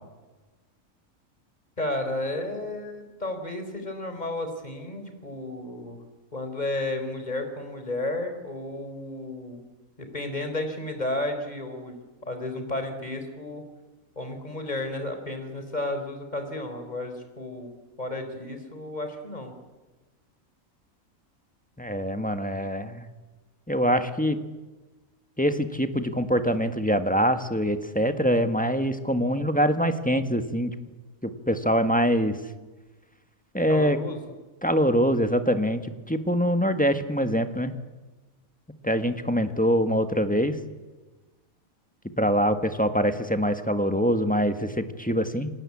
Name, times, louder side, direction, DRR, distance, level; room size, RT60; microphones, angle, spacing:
voice 1, 1.8-6.0 6.3-9.7 10.0-11.9 12.2-13.6 14.2-17.7 18.0-19.5 33.7-34.2 39.5-39.6, left 2 dB, 30° left, 6 dB, 4.2 m, -32 dB
voice 2, 21.8-23.0 23.7-24.4 25.4-30.7 31.2-32.4 33.5-34.0 34.6-37.8 38.8-40.5 42.2-45.5, equal, 5° left, 8 dB, 1.5 m, -24 dB
28.0 x 19.5 x 8.6 m, 1.2 s
omnidirectional pair, 1.4 m